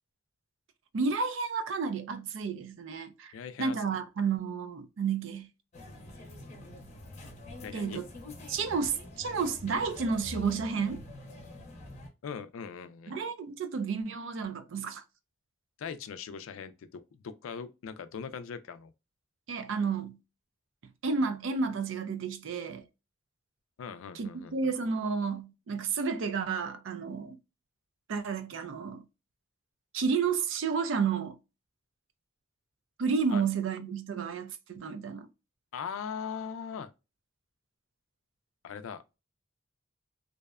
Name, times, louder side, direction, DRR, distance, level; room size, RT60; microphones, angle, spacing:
voice 1, 0.9-3.3 3.6-5.5 7.7-8.1 8.5-11.0 13.1-15.0 19.5-20.2 21.0-22.9 24.1-27.4 28.1-29.0 29.9-31.4 33.0-35.3, right 5 dB, 65° right, 0.4 m, -31 dB
voice 2, 3.3-3.8 7.6-8.0 12.2-13.2 15.8-18.9 23.8-24.7 33.3-33.5 35.7-36.9 38.6-39.2, left 6 dB, 85° left, 0.4 m, -40 dB
sound 1, 5.7-12.1, left 1 dB, 35° left, 0.6 m, -46 dB
2.6 x 2.1 x 2.3 m
head